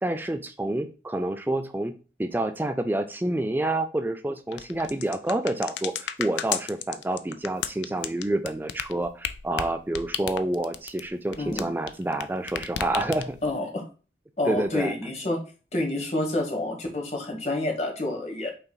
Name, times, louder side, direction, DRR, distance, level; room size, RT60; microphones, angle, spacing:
voice 1, 0.0-1.9 2.2-13.4 14.5-14.9, right 1 dB, 10° right, 8 dB, 0.3 m, -28 dB
sound 1, 4.5-12.2 12.5-13.5, left 9 dB, 85° left, 0.4 m, -33 dB
voice 2, 11.4-11.7 13.4-13.8 14.4-15.4 15.7-18.5, left 2 dB, 40° left, 2 dB, 1.1 m, -28 dB
5.6 x 3.8 x 2.2 m, 0.35 s
head